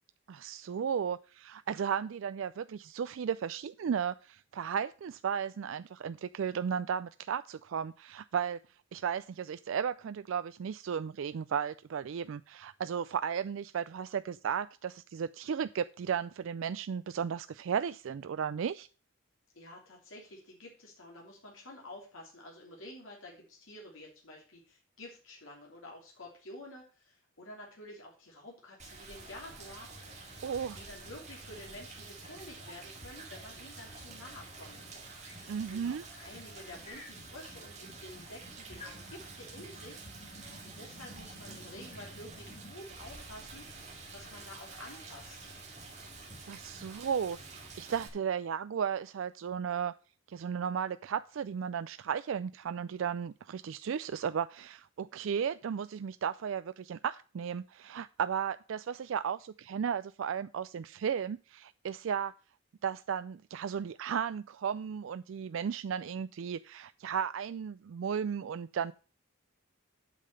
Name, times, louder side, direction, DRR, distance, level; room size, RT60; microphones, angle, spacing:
voice 1, 0.3-8.6 8.9-18.9 30.4-30.8 35.5-36.0 46.5-49.9 50.3-62.3 62.8-68.9, right 7 dB, 65° right, 13 dB, 0.3 m, -35 dB
voice 2, 19.5-29.9 30.5-34.8 35.7-40.0 40.6-45.5, left 1 dB, 70° left, -2 dB, 3.0 m, -50 dB
Rain, 28.8-48.1, right 3 dB, 35° right, 2.3 m, -49 dB
sound 1, 29.1-47.1, left 1 dB, 30° left, 2.4 m, -54 dB
8.3 x 5.7 x 6.7 m, 0.36 s
head